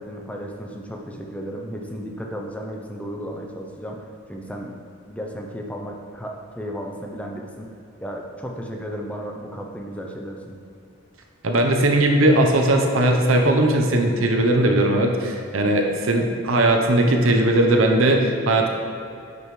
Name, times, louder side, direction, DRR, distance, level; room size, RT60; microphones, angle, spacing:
voice 1, 0.0-4.0 4.3-4.8 5.1-7.7 8.0-10.6, equal, 5° left, 1 dB, 0.6 m, -34 dB
voice 2, 11.4-18.7, right 1 dB, 80° right, 2 dB, 0.8 m, -18 dB
9.8 x 5.4 x 3.2 m, 2.7 s
head